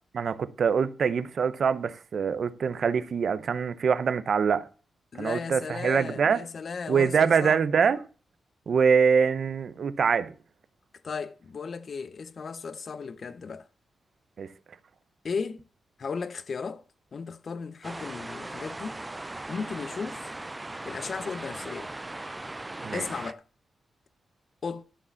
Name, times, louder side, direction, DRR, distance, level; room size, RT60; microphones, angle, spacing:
voice 1, 0.1-4.7 5.2-6.4 6.9-8.0 8.7-10.3 14.4-14.5 22.8-23.0, right 6 dB, 60° right, 0.7 m, -24 dB
voice 2, 5.1-7.6 11.0-13.7 15.2-15.6 16.0-16.8 17.1-19.0 19.5-20.3 20.8-21.9 22.9-23.4 24.6-24.8, left 5 dB, 50° left, 0.7 m, -35 dB
sound 1, 17.8-23.3, right 2 dB, 15° right, 0.5 m, -38 dB
12.5 x 5.0 x 6.9 m
wide cardioid pair, 120°, 0 cm